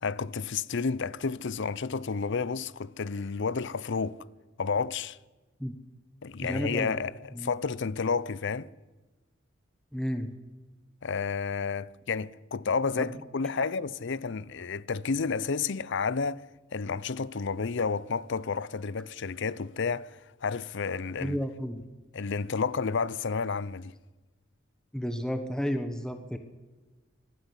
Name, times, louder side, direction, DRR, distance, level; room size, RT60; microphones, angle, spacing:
voice 1, 0.0-4.2 4.6-5.2 6.2-8.7 11.0-16.5 16.7-21.4 22.1-23.9, left 5 dB, 60° left, 0.6 m, -31 dB
voice 2, 6.4-7.0 7.3-7.5 9.9-10.3 13.0-13.1 21.2-21.8 24.9-26.4, equal, 5° left, 1.2 m, -32 dB
22.5 x 12.5 x 9.9 m
head